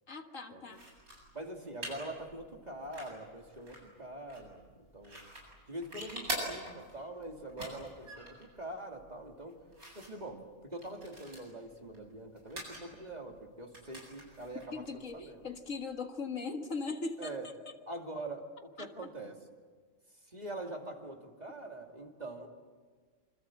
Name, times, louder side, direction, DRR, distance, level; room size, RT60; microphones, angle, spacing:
voice 1, 0.1-0.9 14.7-17.5 18.8-18.9, left 4 dB, 60° left, 5 dB, 2.0 m, -39 dB
sound 1, 0.7-15.8, right 1 dB, 85° right, 8.7 m, -46 dB
voice 2, 1.3-4.6 4.9-5.2 5.7-9.6 9.9-15.5 17.2-17.5 17.9-19.4 20.2-22.5, right 1 dB, 30° right, 2 dB, 2.7 m, -44 dB
27.5 x 25.5 x 7.8 m, 1.5 s
omnidirectional pair, 1.5 m